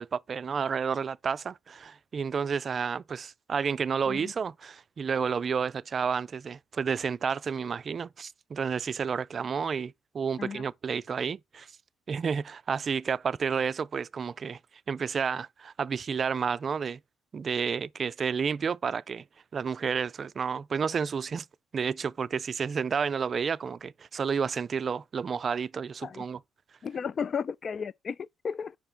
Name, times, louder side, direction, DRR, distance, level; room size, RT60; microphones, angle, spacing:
voice 1, 0.0-11.7 12.1-14.6 14.9-17.0 17.3-19.2 19.5-21.5 21.7-26.4, right 6 dB, 50° right, 0.3 m, -31 dB
voice 2, 26.8-28.7, left 6 dB, 50° left, 0.3 m, -34 dB
5.0 x 4.4 x 5.1 m
hypercardioid pair, 50°, 0 cm